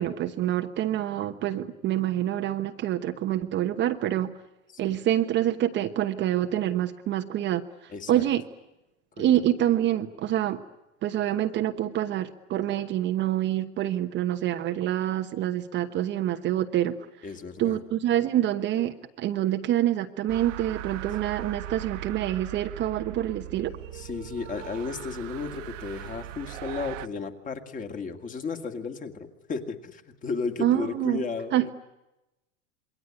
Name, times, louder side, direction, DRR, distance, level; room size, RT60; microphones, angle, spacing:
voice 1, 0.0-4.3 4.8-8.4 9.2-10.6 11.0-17.0 17.6-23.8 30.6-31.2 31.5-31.7, right 12 dB, 30° right, 6 dB, 1.1 m, -26 dB
voice 2, 7.9-8.3 9.2-9.3 17.2-17.8 23.9-31.6, left 4 dB, 20° left, 6 dB, 2.2 m, -34 dB
sound 1, 20.3-27.1, right 15 dB, 75° right, 1.2 m, -39 dB
27.5 x 22.5 x 9.7 m, 0.96 s
supercardioid pair, 150°, 38 cm